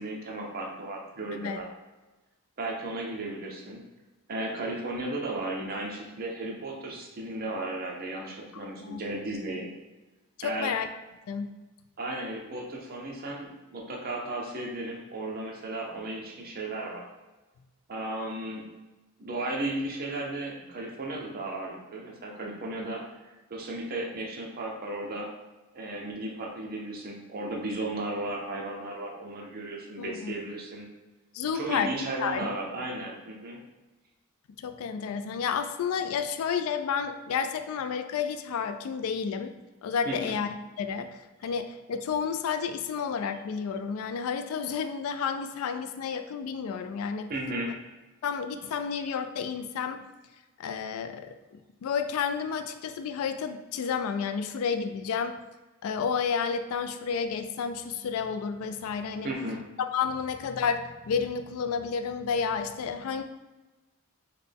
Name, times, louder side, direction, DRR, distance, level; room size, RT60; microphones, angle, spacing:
voice 1, 0.0-1.7 2.6-3.8 4.3-9.7 10.4-10.8 12.0-17.0 17.9-18.6 19.2-25.3 25.7-30.9 31.5-33.6 40.0-40.3 47.3-47.7 59.2-59.6, right 2 dB, 45° right, -1 dB, 0.7 m, -35 dB
voice 2, 1.3-1.6 8.5-9.0 10.4-10.9 11.3-11.5 30.0-30.3 31.3-31.9 32.2-32.5 34.6-39.5 39.8-40.5 40.8-47.3 48.2-50.0 50.6-55.4 55.8-59.3 59.9-63.2, left 6 dB, 70° left, 9 dB, 0.3 m, -31 dB
4.0 x 2.2 x 3.4 m, 1.1 s
head